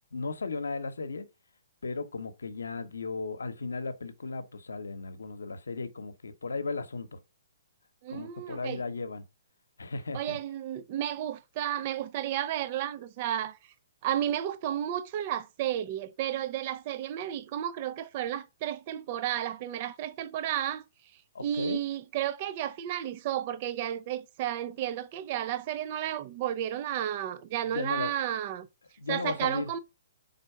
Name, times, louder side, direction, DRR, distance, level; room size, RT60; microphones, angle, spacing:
voice 1, 0.1-1.3 1.8-7.2 8.1-9.2 9.8-10.4 21.3-21.8 27.7-28.1 29.0-29.7, left 3 dB, 90° left, 0.9 m, -35 dB
voice 2, 8.0-8.8 10.1-13.6 14.0-20.8 21.4-28.7 29.1-29.8, right 11 dB, 40° right, 0.5 m, -32 dB
4.5 x 4.0 x 5.6 m
hypercardioid pair, 140°, 0 cm